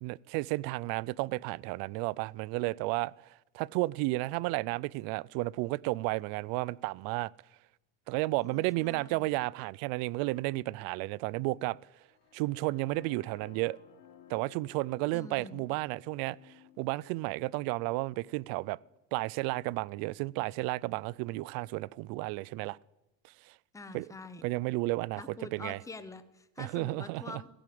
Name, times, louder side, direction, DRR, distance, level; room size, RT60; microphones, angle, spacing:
voice 1, 0.0-3.1 3.5-7.3 8.1-11.8 12.3-13.8 14.3-18.8 19.1-22.8 23.5-23.6 23.9-24.1 24.4-25.2 25.5-25.8 26.6-27.4, right 21 dB, 75° right, 0.5 m, -32 dB
voice 2, 8.4-9.4 15.1-15.7 23.7-24.5 25.2-27.5, left 3 dB, 10° left, 0.8 m, -46 dB
sound 1, 12.0-19.9, left 10 dB, 85° left, 2.5 m, -59 dB
17.0 x 10.0 x 7.7 m
cardioid pair, 165°, 36 cm